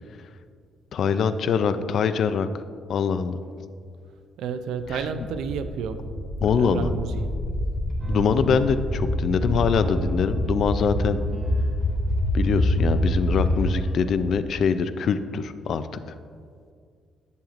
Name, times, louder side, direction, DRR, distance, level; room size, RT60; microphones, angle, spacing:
voice 1, 0.9-2.5 2.9-3.4 4.9-5.1 6.4-7.0 8.1-11.2 12.3-15.9, left 6 dB, 65° left, 11 dB, 0.4 m, -23 dB
voice 2, 4.4-6.0 6.6-7.3, right 6 dB, 85° right, 9 dB, 0.5 m, -31 dB
sound 1, 4.8-13.8, left 1 dB, 50° left, 1.5 m, -26 dB
sound 2, 8.0-13.1 13.8-14.1, right 5 dB, 35° right, 1.3 m, -40 dB
10.5 x 7.1 x 2.5 m, 2.2 s
cardioid pair, 90°, 0 cm